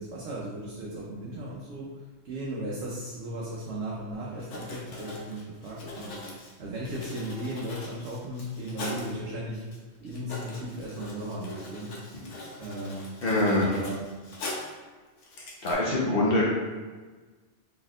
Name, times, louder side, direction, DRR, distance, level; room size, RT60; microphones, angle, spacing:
voice 1, 0.0-9.7 10.0-11.9 12.6-13.1 13.6-14.1, right 1 dB, 70° right, -5 dB, 0.9 m, -36 dB
Writing, 4.4-9.1 9.7-9.8 10.1-14.8 15.2-15.7, left 2 dB, 90° left, 1.2 m, -41 dB
voice 2, 13.2-13.8 15.6-16.5, left 2 dB, 60° left, -5 dB, 0.9 m, -24 dB
4.2 x 3.5 x 2.4 m, 1.3 s
omnidirectional pair, 1.2 m